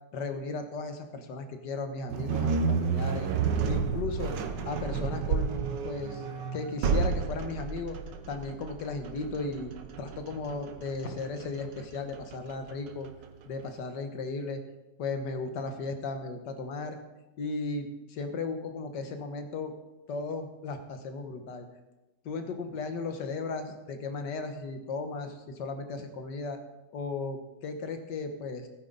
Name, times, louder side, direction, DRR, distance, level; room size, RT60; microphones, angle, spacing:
voice 1, 0.1-3.3 3.7-4.3 4.7-6.2 6.5-8.0 8.3-9.7 10.0-13.1 13.5-14.6 15.0-17.0 17.4-19.7 20.1-21.7 22.3-26.6 26.9-28.7, left 3 dB, 65° left, 7 dB, 1.8 m, -36 dB
sound 1, 2.1-13.2, right 5 dB, 70° right, 1.6 m, -31 dB
16.5 x 9.6 x 4.0 m, 1.0 s
omnidirectional pair, 2.1 m